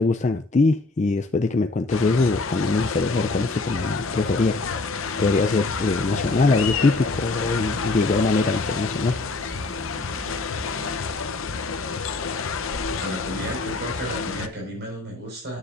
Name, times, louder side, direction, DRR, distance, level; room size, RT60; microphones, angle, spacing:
voice 1, 0.0-4.6 5.2-9.2, left 3 dB, 35° left, 0.4 m, -22 dB
sound 1, 1.9-14.5, left 5 dB, 70° left, 0.8 m, -29 dB
sound 2, 5.0-11.0, right 2 dB, 75° right, 1.4 m, -43 dB
voice 2, 13.0-15.6, right 1 dB, 50° right, 4.9 m, -33 dB
10.0 x 9.5 x 2.5 m
head